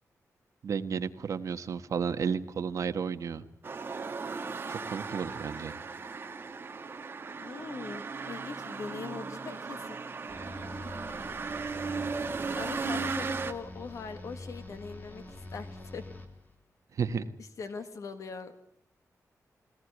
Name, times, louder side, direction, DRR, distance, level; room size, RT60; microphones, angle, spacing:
voice 1, 0.6-3.4 4.7-5.8 17.0-17.3, right 6 dB, 65° right, 9 dB, 1.4 m, -32 dB
sound 1, 3.6-13.5, right 4 dB, 35° right, 1.6 m, -36 dB
voice 2, 7.4-10.0 12.6-15.2 15.5-16.1 17.4-18.5, left 5 dB, 65° left, 9 dB, 1.8 m, -41 dB
sound 2, 10.3-16.6, left 2 dB, 30° left, 2.9 m, -45 dB
22.0 x 18.0 x 9.5 m, 0.72 s
wide cardioid pair, 160°, 6 cm